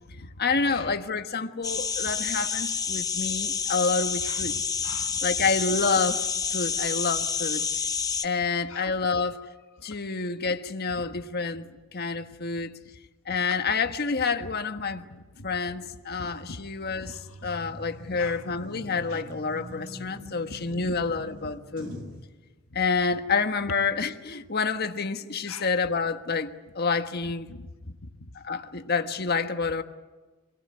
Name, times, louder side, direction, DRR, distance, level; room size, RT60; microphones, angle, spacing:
voice 1, 0.4-4.5 5.2-6.3 6.5-7.7 8.2-9.5 9.8-12.7 13.3-15.0 15.4-17.1 17.4-21.9 22.7-27.5 28.3-29.8, left 4 dB, 50° left, 1.4 m, -28 dB
sound 1, 1.6-8.3, left 6 dB, 15° left, 0.9 m, -29 dB
voice 2, 4.2-5.2 8.7-8.9 9.9-10.0 10.9-11.2 12.8-13.0 13.3-13.4 14.4-14.5 15.1-15.5 16.1-16.6 17.0-17.6 18.2-18.4 19.1-19.2 20.7-21.5 22.7-22.8 25.5-25.7 27.5-28.3, left 3 dB, 75° left, 1.3 m, -44 dB
sound 2, 16.4-22.2, equal, 65° right, 6.9 m, -44 dB
26.0 x 18.5 x 9.6 m
head